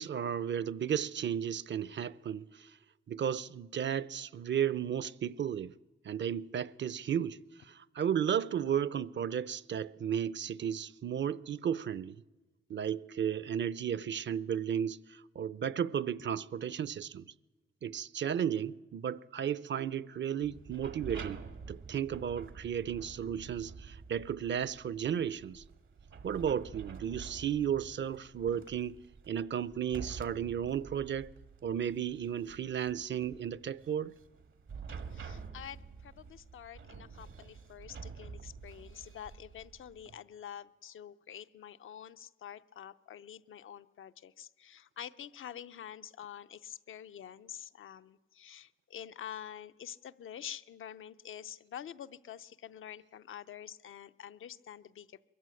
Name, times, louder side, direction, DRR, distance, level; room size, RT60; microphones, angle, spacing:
voice 1, 0.0-2.8 3.1-5.7 6.0-12.2 12.7-17.2 17.8-25.6 26.2-29.0 29.3-31.3 31.6-34.1, right 8 dB, 65° right, 0.6 m, -34 dB
sound 1, 20.4-40.2, right 5 dB, 80° right, 1.6 m, -48 dB
voice 2, 35.1-55.2, left 9 dB, 90° left, 0.7 m, -47 dB
22.5 x 14.0 x 9.7 m
cardioid pair, 70°, 20 cm